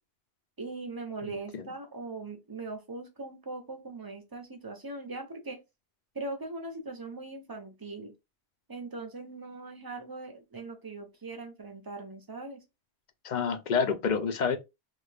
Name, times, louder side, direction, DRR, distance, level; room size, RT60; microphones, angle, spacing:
voice 1, 0.6-5.6 6.1-8.1 8.7-12.6, right 3 dB, 25° right, 0.6 m, -40 dB
voice 2, 1.2-1.7 13.2-14.6, left 6 dB, 55° left, 0.6 m, -29 dB
3.2 x 2.2 x 3.3 m
omnidirectional pair, 1.1 m